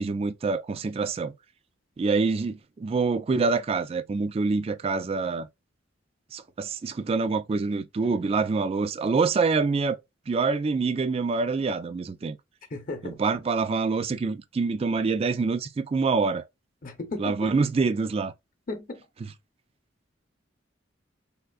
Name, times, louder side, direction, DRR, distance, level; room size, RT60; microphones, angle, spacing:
voice 1, 0.0-1.3 2.0-5.5 6.3-10.0 10.3-12.4 13.0-16.4 17.2-18.3, right 4 dB, 30° right, 0.3 m, -26 dB
voice 2, 12.7-13.2 16.8-17.5 18.7-19.1, left 2 dB, 50° left, 0.8 m, -35 dB
3.5 x 2.5 x 2.3 m
head